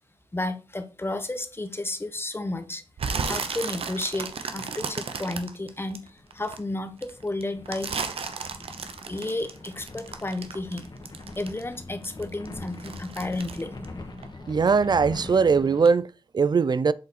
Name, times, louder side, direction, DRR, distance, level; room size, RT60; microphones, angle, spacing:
voice 1, 0.3-2.8 3.2-7.9 9.1-10.9 11.4-13.7, left 2 dB, 25° left, 1.1 m, -32 dB
sound 1, 3.0-6.6 7.0-11.8 12.0-14.7 15.0-15.4 15.8-15.9, right 5 dB, 85° right, 0.8 m, -34 dB
sound 2, 5.9-15.9, left 2 dB, 50° left, 1.5 m, -42 dB
voice 2, 14.5-16.9, right 5 dB, 45° right, 0.4 m, -21 dB
7.7 x 4.0 x 4.1 m
cardioid pair, 55°, 10 cm